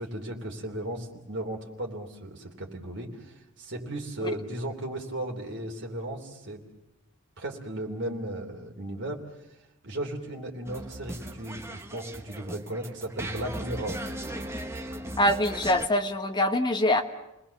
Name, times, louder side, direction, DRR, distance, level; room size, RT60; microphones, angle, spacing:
voice 1, 0.0-6.6 7.4-9.2 9.8-14.0, right 1 dB, 55° right, 1 dB, 3.2 m, -35 dB
sound 1, 10.7-15.9, right 1 dB, 10° right, 1.2 m, -38 dB
voice 2, 15.2-17.0, left 1 dB, 20° left, 6 dB, 1.3 m, -24 dB
29.0 x 20.0 x 7.0 m, 0.92 s
head